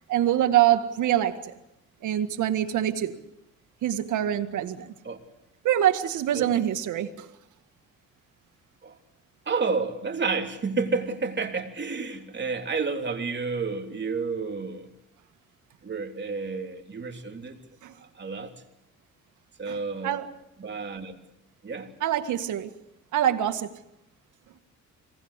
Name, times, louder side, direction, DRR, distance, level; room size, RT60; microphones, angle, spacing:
voice 1, 0.1-1.5 2.0-3.2 3.8-4.9 5.6-7.3 17.8-17.9 19.7-19.8 20.0-20.3 22.0-22.7 23.1-23.7, right 11 dB, 80° right, 1.9 m, -25 dB
voice 2, 9.5-14.9 15.8-17.6 18.0-18.5 19.6-20.2 20.6-21.2 21.6-21.9, right 4 dB, 35° right, 3.5 m, -30 dB
26.5 x 20.0 x 8.3 m
cardioid pair, 90°, 30 cm